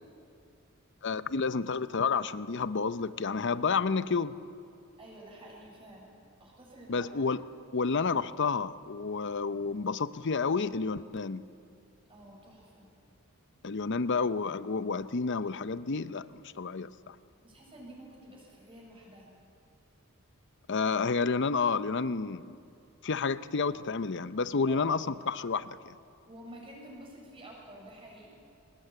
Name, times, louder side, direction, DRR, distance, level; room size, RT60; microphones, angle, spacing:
voice 1, 1.0-4.4 6.9-7.4 7.7-11.4 13.6-17.2 20.7-22.6 23.0-25.9, left 4 dB, 55° left, 14 dB, 0.7 m, -30 dB
voice 2, 5.0-6.1 6.4-7.2 12.1-12.9 17.4-19.3 24.6-24.9 26.3-28.3, right 1 dB, 25° right, -2 dB, 7.1 m, -49 dB
24.0 x 20.0 x 8.8 m, 2.4 s
head